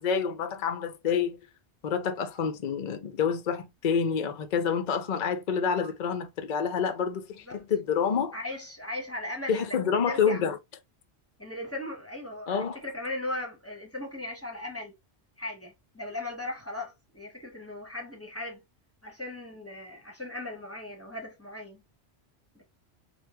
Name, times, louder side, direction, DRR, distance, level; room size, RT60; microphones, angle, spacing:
voice 1, 0.0-1.4 1.8-8.3 9.5-10.6 12.5-12.8, left 6 dB, 55° left, 0.6 m, -28 dB
voice 2, 8.3-9.8 10.1-10.4 11.4-14.9 15.4-18.6 19.0-21.8 22.5-22.6, left 1 dB, 15° left, 1.1 m, -38 dB
3.3 x 2.6 x 2.9 m
omnidirectional pair, 1.2 m